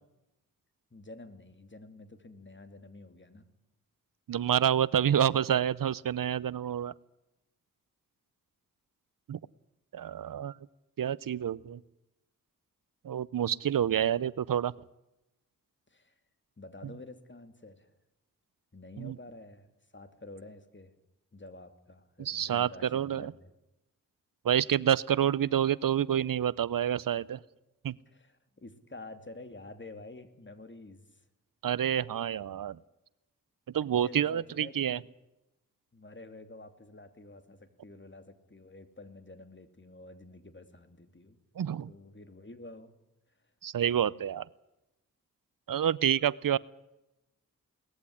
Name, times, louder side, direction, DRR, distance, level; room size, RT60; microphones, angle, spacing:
voice 1, 0.9-3.4 15.9-16.1 16.6-17.9 18.7-20.9 21.3-23.3 28.1-31.2 34.0-35.0 35.9-41.4 41.9-42.9, left 2 dB, 35° left, 10 dB, 2.6 m, -49 dB
voice 2, 4.3-6.9 9.3-9.4 9.9-10.5 11.0-11.8 13.0-14.7 19.0-19.1 22.2-23.3 24.4-27.4 27.8-27.9 31.6-32.8 33.7-35.0 41.6-41.9 43.6-44.4 45.7-46.6, right 9 dB, 80° right, 21 dB, 0.6 m, -28 dB
19.5 x 14.5 x 9.9 m, 0.94 s
cardioid pair, 50°, 33 cm